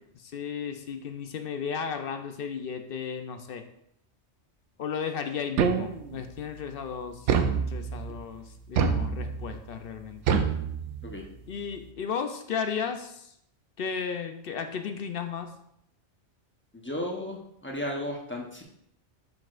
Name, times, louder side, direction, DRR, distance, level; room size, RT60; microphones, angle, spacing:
voice 1, 0.1-3.6 4.8-7.3 7.5-10.2 11.5-13.3 13.8-15.5, left 6 dB, 60° left, 7 dB, 0.7 m, -34 dB
sound 1, 5.6-6.3 7.3-8.1 8.8-9.6 10.3-11.3, right 6 dB, 90° right, 0.9 m, -26 dB
voice 2, 16.7-18.6, left 1 dB, 10° left, 0 dB, 0.8 m, -34 dB
6.8 x 6.1 x 2.5 m, 0.74 s
omnidirectional pair, 1.2 m